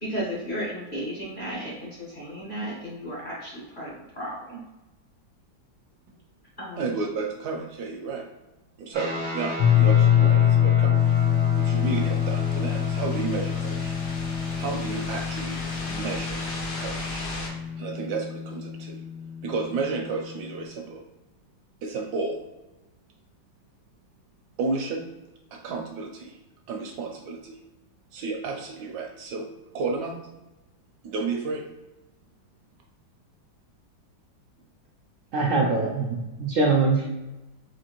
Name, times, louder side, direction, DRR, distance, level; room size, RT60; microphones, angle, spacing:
voice 1, 0.0-4.6 6.6-6.8, equal, 40° left, -7 dB, 0.8 m, -34 dB
voice 2, 6.8-8.3 8.8-11.2 11.6-13.9 14.6-15.6 15.9-16.4 16.8-17.3 17.8-19.0 19.4-21.0 21.8-22.4 24.6-25.1 25.5-26.4 26.7-27.6 28.1-29.5 29.7-30.2 31.0-31.6, right 4 dB, 75° right, 2 dB, 1.0 m, -32 dB
sound 1, 8.9-20.7, left 3 dB, 40° right, 0.4 m, -33 dB
Piano, 9.6-15.2, left 10 dB, 75° left, 1.5 m, -22 dB
sound 2, 10.9-17.5, left 1 dB, 60° left, 1.3 m, -38 dB
voice 3, 35.3-37.1, right 3 dB, 90° right, -2 dB, 0.6 m, -23 dB
4.3 x 2.7 x 2.9 m, 1.0 s
omnidirectional pair, 2.0 m